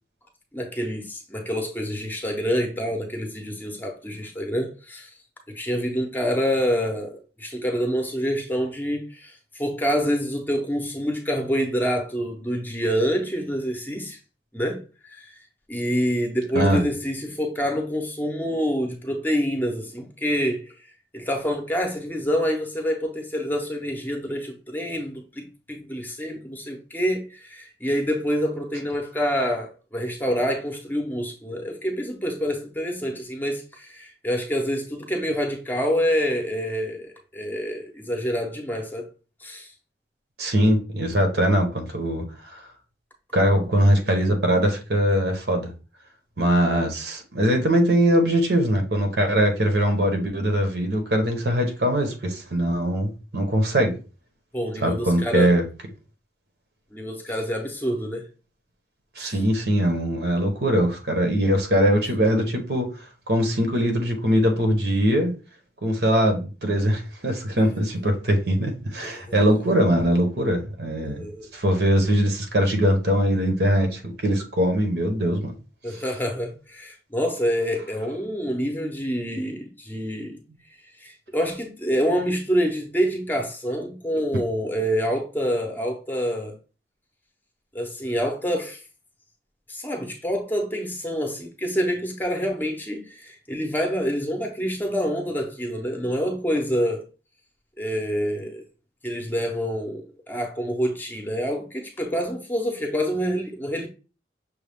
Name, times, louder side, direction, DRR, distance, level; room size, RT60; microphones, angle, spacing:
voice 1, 0.5-5.1 5.5-14.2 14.5-15.3 15.7-20.7 21.1-39.1 39.4-39.7 54.5-55.6 56.9-58.3 59.2-59.4 69.0-69.4 71.0-71.5 75.8-80.4 81.0-86.5 87.7-88.8 89.7-97.1 97.8-98.6 99.0-103.9, equal, 10° left, 0.7 m, -27 dB
voice 2, 40.4-42.6 43.3-45.7 46.4-53.9 54.8-55.6 59.2-62.9 63.3-65.3 65.8-71.2 71.5-75.5, equal, 65° right, 1.0 m, -21 dB
6.2 x 2.3 x 3.5 m
head